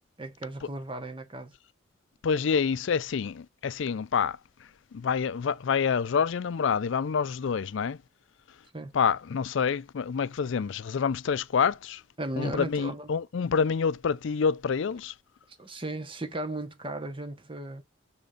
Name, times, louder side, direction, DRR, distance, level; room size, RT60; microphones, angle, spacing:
voice 1, 0.2-1.5 8.7-8.9 12.2-13.1 15.6-17.8, right 2 dB, 25° right, 1.0 m, -36 dB
voice 2, 2.2-4.4 4.9-8.0 8.9-12.0 12.4-15.1, left 6 dB, 70° left, 0.4 m, -27 dB
6.9 x 3.8 x 5.0 m
head